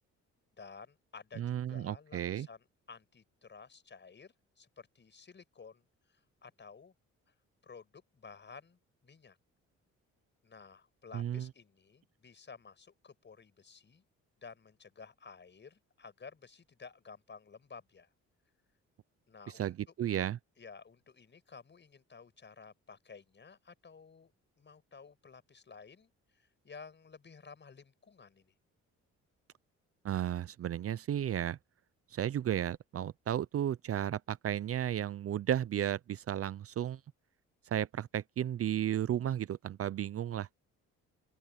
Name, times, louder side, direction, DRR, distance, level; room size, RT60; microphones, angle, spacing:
voice 1, 0.6-6.9 7.3-7.4 7.6-9.4 10.4-14.0 14.4-18.1 19.3-19.9 20.6-24.3 24.6-28.5, left 5 dB, 35° left, 5.8 m, -54 dB
voice 2, 1.4-2.5 11.1-11.4 19.6-20.4 30.0-31.6 32.1-37.0 37.7-40.5, right 11 dB, 50° right, 0.6 m, -33 dB
open air
cardioid pair, 90°, 30 cm